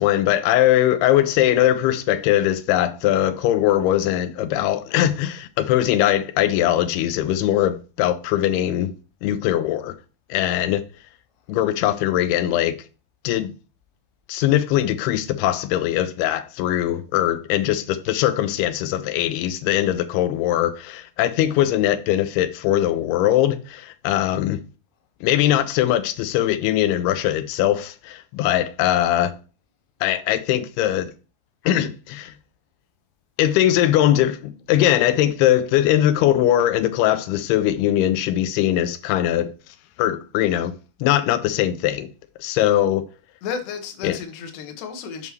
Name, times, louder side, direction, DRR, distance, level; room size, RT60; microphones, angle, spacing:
voice 1, 0.0-8.9 9.2-10.0 10.3-10.8 11.5-12.8 13.2-13.5 14.3-24.6 25.2-29.3 30.0-31.1 31.7-32.3 33.4-39.5 40.0-40.7 41.0-42.1 42.4-43.0 44.0-44.2, left 12 dB, 85° left, 2.6 m, -21 dB
voice 2, 43.4-45.3, left 6 dB, 65° left, 2.3 m, -32 dB
8.1 x 5.4 x 3.1 m
omnidirectional pair, 4.5 m